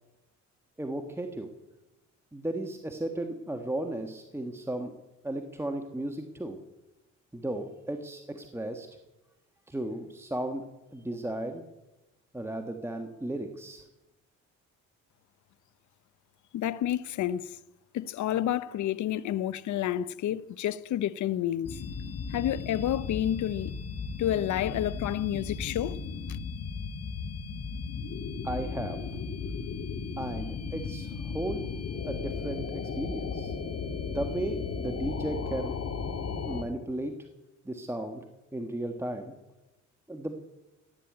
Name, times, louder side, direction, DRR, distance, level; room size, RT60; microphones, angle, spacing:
voice 1, 0.8-1.5 2.3-4.9 5.2-6.6 7.3-8.9 9.7-10.6 10.9-11.6 12.3-13.9 28.4-29.0 30.2-31.7 32.0-33.5 34.1-35.8 36.4-37.2 37.6-38.2 38.5-39.3 40.1-40.4, right 1 dB, 10° right, 1.5 m, -35 dB
voice 2, 16.5-17.6 17.9-21.8 22.3-23.7 24.2-26.0 26.3-26.4, left 11 dB, 70° left, 0.8 m, -29 dB
sound 1, 21.6-36.6, left 5 dB, 55° left, 1.8 m, -35 dB
15.5 x 9.9 x 8.8 m
cardioid pair, 90°, 30 cm